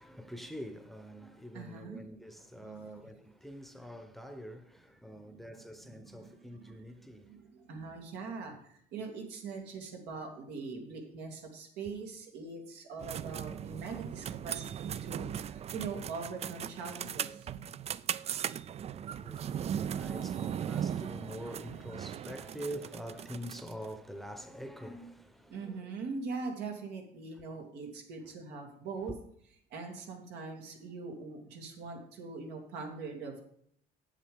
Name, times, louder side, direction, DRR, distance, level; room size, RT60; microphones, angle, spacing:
voice 1, 0.0-7.3 18.9-25.8, equal, ahead, 0.8 m, -45 dB
voice 2, 1.5-2.1 2.6-3.1 5.1-6.9 7.2-17.6 25.5-29.1 29.7-33.4, right 4 dB, 85° right, 2.4 m, -42 dB
sound 1, 13.0-23.9, right 9 dB, 40° right, 0.4 m, -38 dB
8.3 x 7.5 x 5.2 m
cardioid pair, 110°, 17 cm